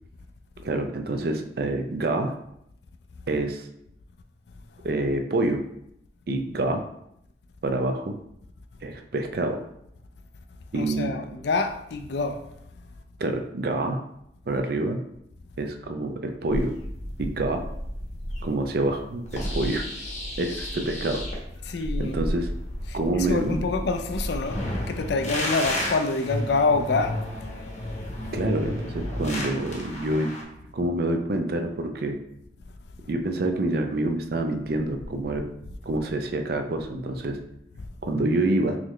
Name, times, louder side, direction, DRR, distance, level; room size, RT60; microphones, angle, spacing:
voice 1, 0.6-2.3 3.3-3.7 4.8-5.6 6.3-6.8 7.6-8.2 8.8-9.6 10.7-11.1 13.2-14.0 14.5-15.0 15.6-16.7 17.2-17.6 18.4-19.8 20.4-21.2 22.0-22.5 22.9-23.7 28.3-30.3 30.7-32.2 33.1-35.5 35.8-37.4 38.0-38.8, right 2 dB, 55° right, 0.4 m, -27 dB
voice 2, 10.7-12.4 21.6-22.2 22.8-27.2, left 3 dB, 65° left, 0.4 m, -26 dB
sound 1, 16.5-30.4, left 1 dB, 40° left, 0.8 m, -32 dB
3.9 x 3.1 x 3.1 m
head